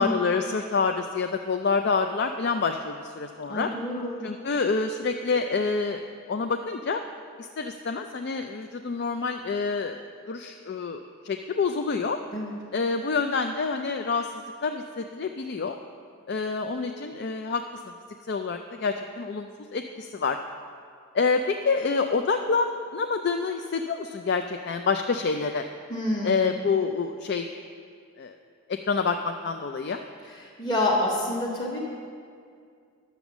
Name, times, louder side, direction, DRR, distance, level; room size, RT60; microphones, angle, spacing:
voice 1, 0.0-3.7 4.2-6.0 6.3-7.0 7.4-10.0 10.3-12.2 12.7-15.8 16.3-17.9 18.3-20.4 21.1-25.6 26.2-27.5 28.2-28.4 28.7-30.0, left 4 dB, 50° left, 6 dB, 0.4 m, -27 dB
voice 2, 3.5-4.2 12.3-12.5 25.9-26.4 30.2-31.8, left 1 dB, 20° left, -5 dB, 1.2 m, -28 dB
10.5 x 7.0 x 7.2 m, 2.2 s
head